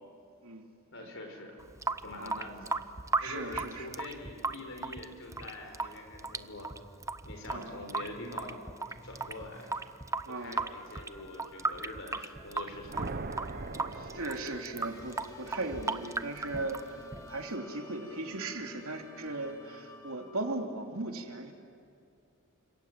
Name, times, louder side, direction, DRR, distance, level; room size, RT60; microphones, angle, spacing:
voice 1, 0.9-1.6 2.0-2.7 3.2-6.7 7.2-8.6 9.0-9.7 10.3-13.0, left 2 dB, 60° left, 3 dB, 4.7 m, -44 dB
Water tap faucet / Sink (filling or washing) / Drip, 1.6-17.5, right 3 dB, 15° right, 0.7 m, -37 dB
voice 2, 3.2-3.9 7.5-7.7 10.2-10.6 13.9-21.5, right 2 dB, 70° right, 3 dB, 3.1 m, -38 dB
sound 1, 5.2-20.6, left 3 dB, 20° left, 4.1 m, -54 dB
sound 2, 12.5-15.1, right 3 dB, 45° right, 0.9 m, -41 dB
29.5 x 26.5 x 7.6 m, 2.5 s
head